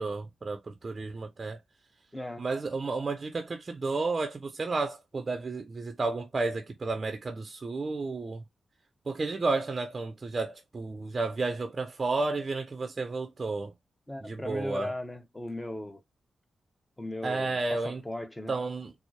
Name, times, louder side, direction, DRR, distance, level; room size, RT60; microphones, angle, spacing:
voice 1, 0.0-1.6 2.4-8.4 9.1-13.7 14.2-14.9 17.2-18.0 18.5-18.9, right 3 dB, 45° right, 0.5 m, -32 dB
voice 2, 2.1-2.5 14.1-16.0 17.0-17.6 17.8-18.5, left 1 dB, 15° left, 0.9 m, -37 dB
4.3 x 2.0 x 2.8 m
supercardioid pair, 40°, 0 cm